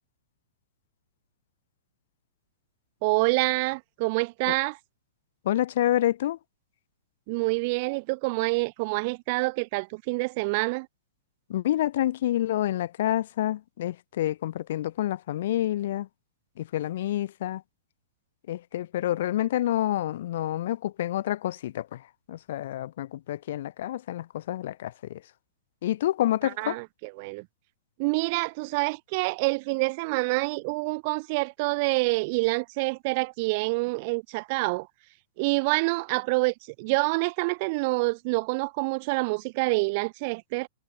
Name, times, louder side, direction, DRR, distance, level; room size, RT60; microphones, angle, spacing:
voice 1, 3.0-4.8 7.3-10.9 26.4-27.5 28.0-34.9 35.4-40.7, right 28 dB, 30° right, 2.4 m, -27 dB
voice 2, 5.5-6.4 11.5-16.1 16.6-17.6 18.5-22.0 22.3-25.2 25.8-26.8, left 13 dB, 50° left, 2.1 m, -28 dB
hypercardioid pair, 175°, 0 cm